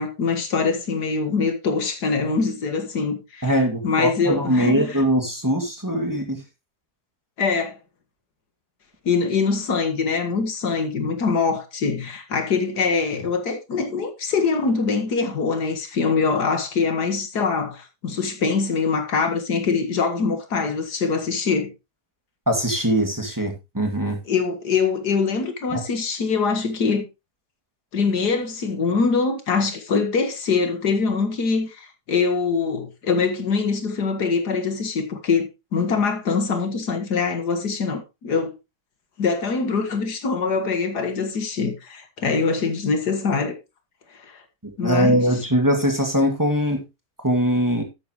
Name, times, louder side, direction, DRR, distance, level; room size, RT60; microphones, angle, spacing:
voice 1, 0.0-5.0 7.4-7.8 9.0-21.7 24.3-27.1 27.9-38.6 39.2-43.6 44.1-44.4 44.8-45.2, left 4 dB, 80° left, 2.3 m, -23 dB
voice 2, 3.4-6.4 22.5-24.2 25.7-25.8 44.8-46.8 47.2-47.8, equal, 10° right, 2.3 m, -21 dB
12.0 x 8.8 x 3.1 m
omnidirectional pair, 1.7 m